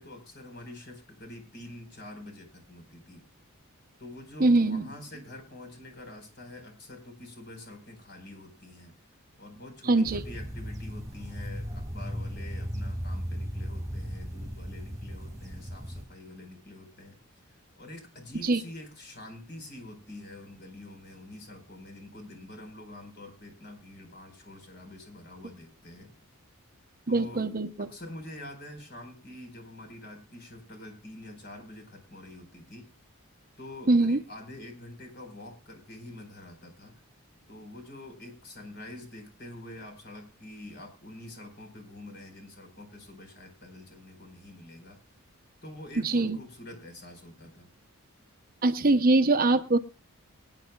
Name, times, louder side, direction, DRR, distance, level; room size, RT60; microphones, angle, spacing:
voice 1, 0.0-3.2 4.0-8.9 9.4-17.2 17.5-26.1 27.1-27.4 27.8-32.9 33.6-36.9 37.5-45.0 45.6-47.7, left 1 dB, 50° left, 5 dB, 4.8 m, -46 dB
voice 2, 4.4-4.8 9.9-10.2 18.4-18.6 27.1-27.7 33.9-34.2 46.0-46.4 48.6-49.8, right 2 dB, 40° right, 10 dB, 0.8 m, -22 dB
sound 1, 10.1-16.0, equal, 15° right, 1.8 m, -36 dB
24.5 x 9.8 x 2.3 m, 0.32 s
head